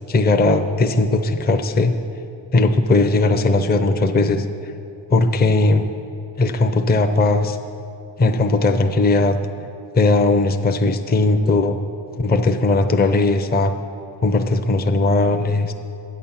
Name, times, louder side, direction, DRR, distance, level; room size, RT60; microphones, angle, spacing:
voice 1, 0.1-1.9 2.5-4.5 5.1-5.9 6.4-7.6 8.2-9.4 9.9-11.8 12.2-13.7 14.2-15.7, left 2 dB, 20° left, 6 dB, 0.6 m, -18 dB
8.4 x 7.4 x 5.8 m, 2.7 s
cardioid pair, 55°, 46 cm